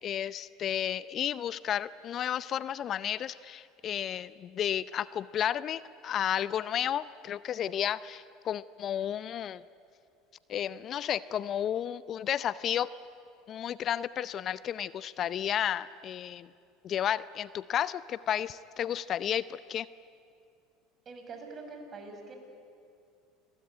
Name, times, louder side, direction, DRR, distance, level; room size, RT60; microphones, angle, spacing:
voice 1, 0.0-9.6 10.5-12.9 13.5-16.5 16.8-19.9, left 10 dB, 45° left, 17 dB, 0.6 m, -32 dB
voice 2, 21.0-22.4, right 3 dB, 35° right, 4 dB, 6.5 m, -44 dB
29.0 x 22.0 x 9.4 m, 2.4 s
hypercardioid pair, 75°, 0 cm